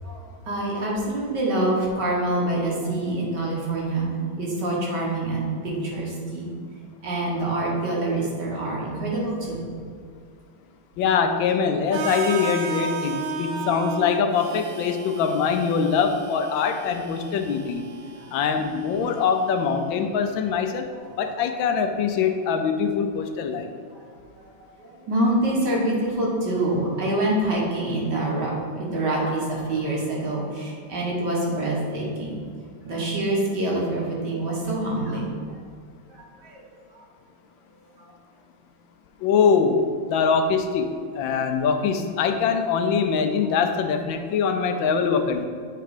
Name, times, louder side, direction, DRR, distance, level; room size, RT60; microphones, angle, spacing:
voice 1, 0.0-6.5 7.0-9.7 18.2-18.4 23.9-24.0 24.4-24.5 24.8-28.5 28.8-32.4 32.8-35.3 36.1-36.6 36.9-37.0 38.0-38.1, right 1 dB, 60° right, -3 dB, 2.0 m, -26 dB
voice 2, 11.0-17.8 18.3-20.9 21.2-23.7 39.2-45.5, left 6 dB, 80° left, 6 dB, 1.3 m, -23 dB
Harmonica, 11.9-19.8, right 5 dB, 80° right, 1.3 m, -35 dB
8.3 x 3.3 x 4.9 m, 2.2 s
omnidirectional pair, 2.1 m